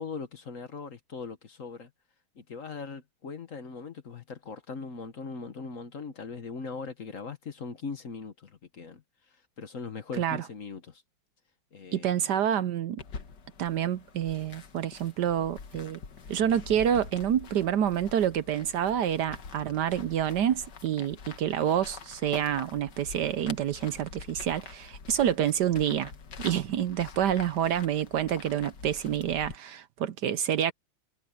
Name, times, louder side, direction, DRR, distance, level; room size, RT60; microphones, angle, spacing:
voice 1, 0.0-1.9 2.4-9.0 9.6-11.0 11.7-12.3, left 4 dB, 45° left, 1.5 m, -40 dB
voice 2, 11.9-13.0 13.6-16.0 16.3-26.1 26.4-30.7, right 10 dB, 65° right, 1.2 m, -28 dB
sound 1, 13.0-29.6, left 5 dB, 60° left, 2.1 m, -46 dB
omnidirectional pair, 2.1 m